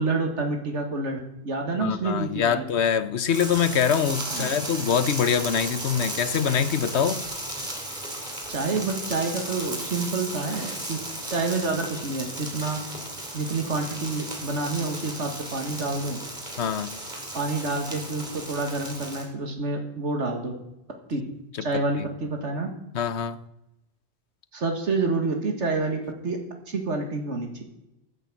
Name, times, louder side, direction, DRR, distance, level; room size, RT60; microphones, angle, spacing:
voice 1, 0.0-2.6 4.3-4.6 8.5-11.0 11.3-12.8 13.3-16.2 17.3-20.5 21.1-21.2 21.6-22.7 24.5-26.4 26.7-27.6, right 3 dB, 80° right, 4 dB, 2.0 m, -28 dB
voice 2, 1.8-7.2 16.6-16.9 21.7-21.8 22.9-23.4, left 7 dB, 70° left, 14 dB, 1.2 m, -24 dB
sound 1, 3.3-19.3, right 1 dB, 40° right, 3.2 m, -35 dB
14.5 x 8.9 x 7.7 m, 0.90 s
omnidirectional pair, 1.2 m